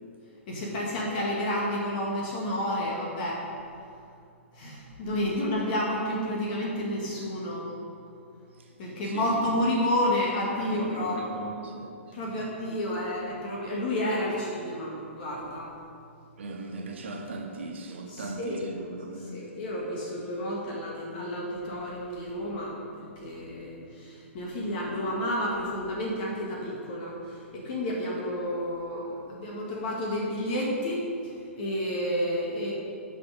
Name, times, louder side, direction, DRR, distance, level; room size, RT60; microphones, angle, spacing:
voice 1, 0.5-3.4 4.5-7.8 8.8-11.2 12.1-15.7 18.1-18.6 19.3-31.0 31.6-32.7, left 1 dB, 40° left, 2.0 m, -30 dB
voice 2, 9.0-9.3 10.5-12.5 16.4-19.4, right 2 dB, 60° right, 1.5 m, -39 dB
10.0 x 6.1 x 6.6 m
figure-of-eight pair, 115°, 7 cm